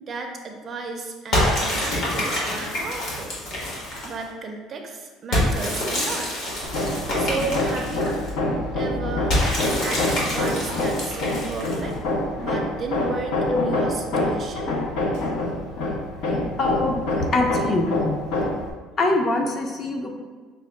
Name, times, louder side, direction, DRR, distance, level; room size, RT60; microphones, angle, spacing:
voice 1, 0.0-3.4 4.0-6.4 7.2-8.2 8.7-11.9 12.4-14.7, right 3 dB, 30° right, 3 dB, 0.4 m, -33 dB
sound 1, 1.3-4.2 5.3-8.3 9.3-11.9, left 1 dB, 55° left, 1.3 m, -26 dB
Hammer, 6.6-18.7, left 1 dB, 75° left, 0.7 m, -26 dB
voice 2, 16.6-18.2 19.0-20.2, left 2 dB, 30° left, 2 dB, 0.5 m, -23 dB
5.5 x 2.1 x 3.4 m, 1.4 s
cardioid pair, 160°, 0 cm